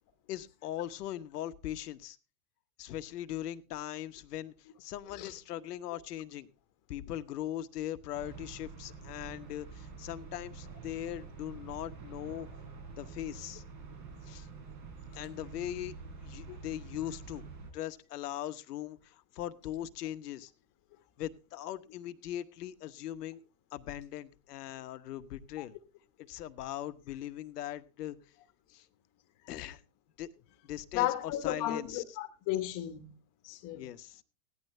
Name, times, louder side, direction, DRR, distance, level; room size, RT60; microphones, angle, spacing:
voice 1, 0.3-2.2 2.8-6.5 6.9-12.5 13.0-13.6 14.3-14.5 15.1-15.9 16.2-17.4 17.7-20.5 21.2-23.4 23.7-25.7 26.3-28.2 28.7-28.9 29.5-29.8 30.2-30.3 30.6-32.0 33.7-34.2, left 12 dB, 75° left, 1.2 m, -40 dB
sound 1, 8.1-17.7, right 4 dB, 45° right, 3.9 m, -47 dB
voice 2, 30.9-33.1 33.4-33.9, left 13 dB, 40° left, 1.3 m, -34 dB
16.0 x 11.0 x 3.2 m
hypercardioid pair, 115°, 47 cm